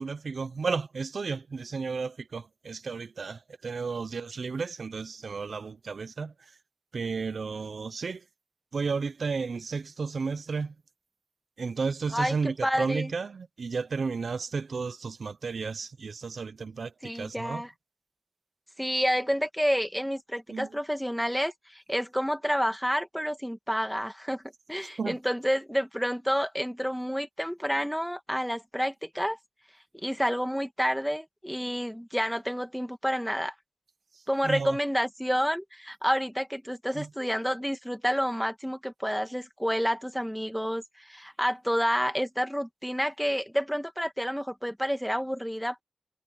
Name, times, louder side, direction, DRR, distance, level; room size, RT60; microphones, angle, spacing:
voice 1, 0.0-6.3 6.9-8.2 8.7-10.7 11.6-17.6 20.5-20.8 25.0-25.2 34.4-34.8 36.9-37.1, right 4 dB, 80° right, 0.8 m, -33 dB
voice 2, 12.1-13.1 17.0-17.7 18.8-24.4 24.7-29.4 29.9-33.5 34.3-45.8, equal, ahead, 2.3 m, -29 dB
cardioid pair, 55°, 0 cm